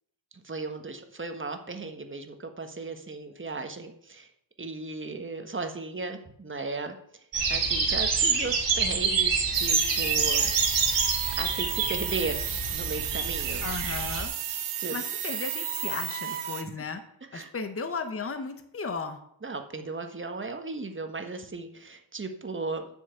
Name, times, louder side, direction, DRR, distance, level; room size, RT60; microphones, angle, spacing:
voice 1, 0.3-4.3 4.6-6.9 7.5-10.5 11.4-12.4 12.7-13.7 14.5-15.0 16.8-16.9 17.3-17.5 19.4-22.9, right 3 dB, 25° right, 6 dB, 1.4 m, -36 dB
sound 1, 7.3-14.2, right 5 dB, 65° right, 2.4 m, -27 dB
sound 2, 9.5-16.6, right 10 dB, 85° right, 1.2 m, -33 dB
voice 2, 13.6-14.3 14.9-17.0 17.3-19.2, left 4 dB, 30° left, 8 dB, 1.1 m, -35 dB
7.9 x 6.3 x 8.1 m, 0.70 s
wide cardioid pair, 110°, 48 cm